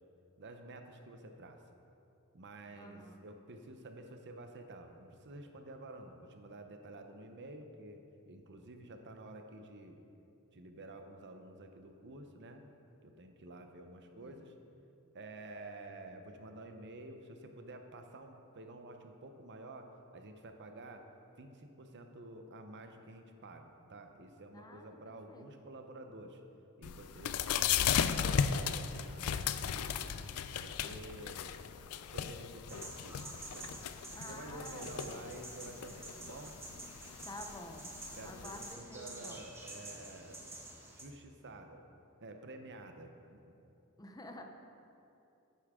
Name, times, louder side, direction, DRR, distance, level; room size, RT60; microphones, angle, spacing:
voice 1, 0.4-1.6 2.3-10.0 10.5-12.6 13.0-14.5 15.1-21.0 21.4-26.4 26.8-30.1 30.6-31.6 32.1-33.2 33.5-33.7 34.3-36.6 38.2-40.5 41.0-41.8 42.2-43.1, right 2 dB, 55° right, 5 dB, 0.8 m, -50 dB
voice 2, 2.7-3.2 14.2-14.5 24.5-25.0 25.3-25.5 34.1-35.4 37.3-37.9 38.2-39.4 44.0-44.4, left 1 dB, 15° left, 4 dB, 0.6 m, -50 dB
sound 1, 26.8-38.7, left 8 dB, 80° left, 0.4 m, -36 dB
sound 2, 32.7-41.0, right 2 dB, 10° right, 1.2 m, -49 dB
10.0 x 9.7 x 3.7 m, 2.7 s
head